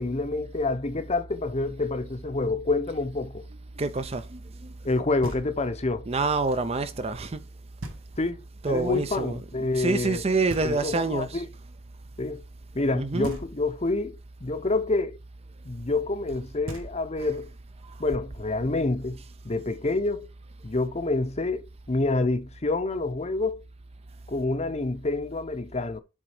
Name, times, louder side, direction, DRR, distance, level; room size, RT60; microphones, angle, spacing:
voice 1, 0.0-3.4 4.8-6.0 8.2-10.2 10.6-11.5 12.2-12.4 12.7-15.2 15.6-17.5 18.0-20.3 20.6-23.6 24.3-26.0, left 2 dB, 30° left, 0.7 m, -28 dB
voice 2, 3.8-4.7 6.1-7.4 8.6-9.4 9.7-11.4 12.9-13.4 17.2-17.3, right 3 dB, 30° right, 0.5 m, -27 dB
Knock, 5.2-5.9 7.8-8.5 10.5-11.3 13.2-14.0 16.3-16.4 16.7-17.5, right 1 dB, 85° right, 1.6 m, -40 dB
7.2 x 3.9 x 4.8 m
head